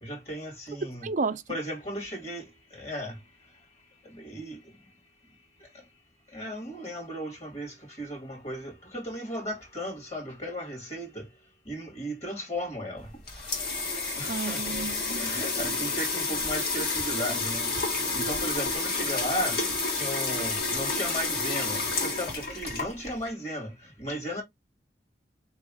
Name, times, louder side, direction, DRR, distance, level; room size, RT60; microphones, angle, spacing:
voice 1, 0.0-1.1 1.5-2.5 2.7-3.2 4.0-4.6 6.3-11.3 11.7-13.1 13.4-14.7 15.2-19.6 19.9-24.4, equal, 40° left, 2.1 m, -36 dB
voice 2, 1.0-1.4 14.3-15.2, right 4 dB, 45° right, 0.5 m, -31 dB
sound 1, 13.0-23.3, left 3 dB, 60° left, 2.0 m, -30 dB
3.9 x 3.5 x 3.7 m
head